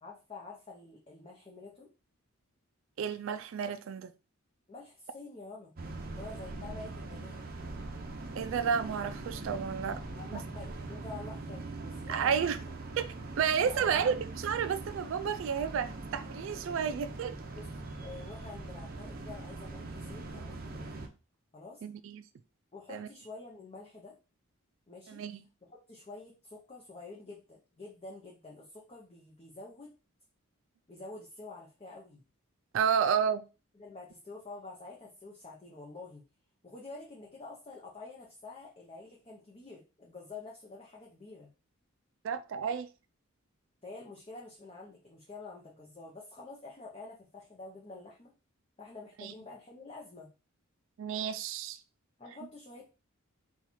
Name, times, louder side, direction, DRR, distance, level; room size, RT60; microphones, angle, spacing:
voice 1, 0.0-1.9 4.7-5.7 6.1-7.5 10.1-12.8 13.6-14.1 17.6-21.1 21.5-21.8 22.7-24.2 24.9-25.2 25.6-29.9 30.9-32.2 33.8-36.2 36.6-41.5 43.8-48.3 48.8-50.3 52.2-52.9, left 3 dB, 25° left, 0.6 m, -48 dB
voice 2, 3.0-4.1 8.3-10.0 10.3-10.4 12.1-12.6 13.0-13.1 13.4-17.4 21.8-22.2 22.9-23.1 25.1-25.4 32.7-33.5 42.2-42.9 49.2-49.3 51.0-51.8, right 7 dB, 60° right, 0.3 m, -31 dB
sound 1, 5.8-21.1, right 2 dB, 45° right, 0.7 m, -42 dB
4.3 x 2.3 x 4.1 m
head